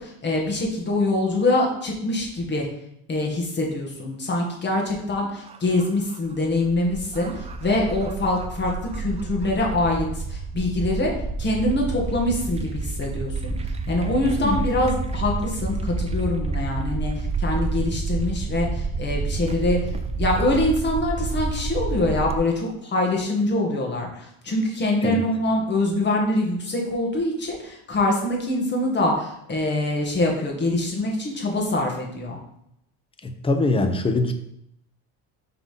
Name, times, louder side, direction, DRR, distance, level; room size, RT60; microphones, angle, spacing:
voice 1, 0.0-2.7 3.1-11.1 11.4-19.9 20.2-32.4, left 2 dB, 30° left, 0 dB, 2.1 m, -24 dB
sound 1, 5.4-22.4, right 3 dB, 20° right, 0.5 m, -29 dB
voice 2, 33.2-34.3, left 2 dB, 15° left, 7 dB, 0.8 m, -23 dB
5.9 x 4.0 x 5.3 m, 0.76 s
supercardioid pair, 110°, 35 cm